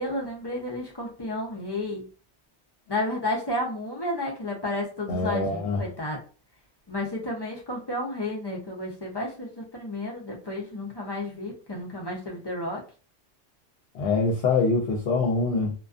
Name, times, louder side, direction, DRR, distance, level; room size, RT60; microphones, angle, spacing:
voice 1, 0.0-2.0 2.9-6.2 6.9-12.8, left 1 dB, 35° left, 0.4 m, -32 dB
voice 2, 5.1-5.8 13.9-15.7, left 3 dB, 70° left, 0.8 m, -24 dB
2.3 x 2.2 x 2.4 m
omnidirectional pair, 1.2 m